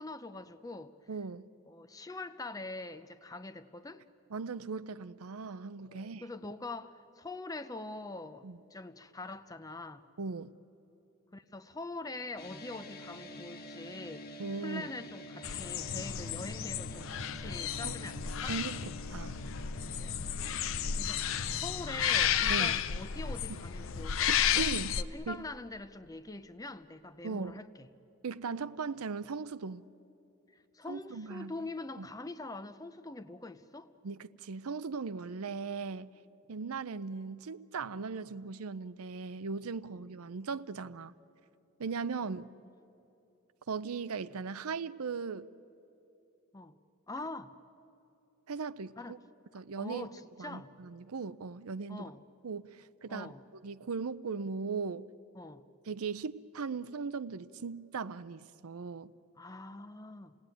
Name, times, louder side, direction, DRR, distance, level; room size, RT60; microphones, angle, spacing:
voice 1, 0.0-0.9 1.7-4.0 5.9-8.4 8.7-10.1 11.3-18.6 20.0-20.4 21.0-24.3 24.5-24.7 25.0-27.9 30.5-33.9 39.9-40.0 46.5-46.7 47.1-47.5 49.0-49.2 49.8-50.7 51.9-52.2 53.1-53.4 55.3-55.7 59.4-60.3, left 2 dB, 15° left, 0.6 m, -44 dB
voice 2, 1.1-1.5 4.3-6.2 8.4-8.6 10.2-10.5 14.4-14.9 17.8-18.0 18.5-19.4 22.5-22.8 24.3-25.0 25.3-25.4 27.2-27.6 28.2-29.8 30.9-31.5 32.0-32.1 34.0-36.1 36.5-41.1 41.8-42.5 43.7-45.5 48.5-49.2 49.5-50.1 50.4-52.1 52.4-55.0 55.9-59.1, right 5 dB, 80° right, 0.6 m, -38 dB
sound 1, 12.4-22.8, right 1 dB, 45° left, 1.5 m, -48 dB
sound 2, 15.4-25.0, left 8 dB, 60° left, 0.5 m, -32 dB
28.5 x 18.5 x 9.1 m
head